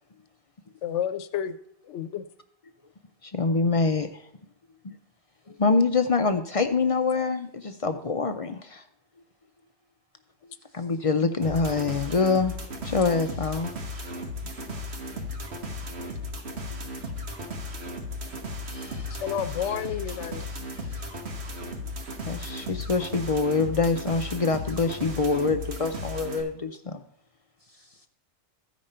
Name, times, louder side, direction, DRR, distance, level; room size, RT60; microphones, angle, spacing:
voice 1, 0.8-1.6 1.8-2.2 19.1-20.5 25.7-25.8, left 9 dB, 85° left, 12 dB, 1.0 m, -31 dB
voice 2, 3.2-4.2 4.8-4.9 5.5-8.8 10.7-12.5 12.8-13.7 16.7-16.8 22.2-27.0, left 4 dB, 45° left, 8 dB, 0.5 m, -25 dB
sound 1, 11.4-26.4, left 1 dB, 65° right, 1.5 m, -35 dB
voice 3, 18.6-19.5 20.1-21.1 27.7-28.1, right 1 dB, 45° right, 4 dB, 0.5 m, -52 dB
14.5 x 5.2 x 4.3 m, 0.70 s
omnidirectional pair, 1.2 m